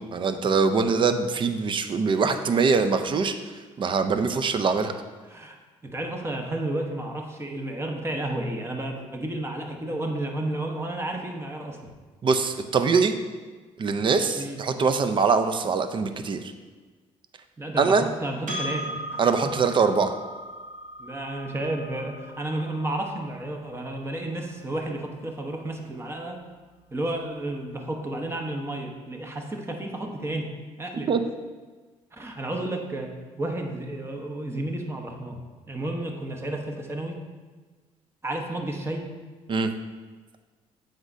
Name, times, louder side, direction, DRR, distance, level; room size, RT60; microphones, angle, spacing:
voice 1, 0.0-3.4 3.8-4.9 12.2-13.2 13.8-16.5 17.8-18.1 19.2-20.1 31.1-31.2 39.5-39.7, right 5 dB, 40° right, 9 dB, 0.5 m, -23 dB
voice 2, 5.8-11.8 14.4-14.6 17.6-19.5 21.0-26.4 26.9-30.5 30.8-31.1 32.1-33.1 33.4-35.4 35.7-37.2 38.2-39.1, right 1 dB, 20° right, 2 dB, 1.0 m, -32 dB
Percussion, 18.5-23.3, right 1 dB, 70° right, 1.7 m, -37 dB
8.0 x 5.1 x 2.7 m, 1.4 s
supercardioid pair, 80°, 13 cm